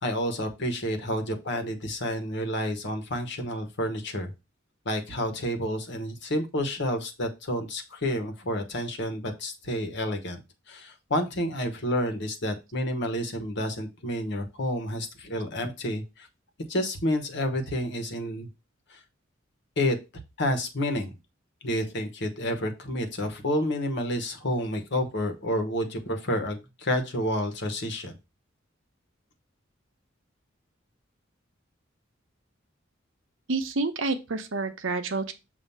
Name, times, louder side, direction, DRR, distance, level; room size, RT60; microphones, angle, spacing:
voice 1, 0.0-4.3 4.8-10.4 10.7-16.3 16.7-18.5 18.9-19.0 19.8-20.0 20.4-21.2 21.6-28.1, equal, 60° left, 6 dB, 1.2 m, -29 dB
voice 2, 33.5-35.3, right 3 dB, 75° right, 7 dB, 0.9 m, -28 dB
7.0 x 2.7 x 5.5 m, 0.26 s
head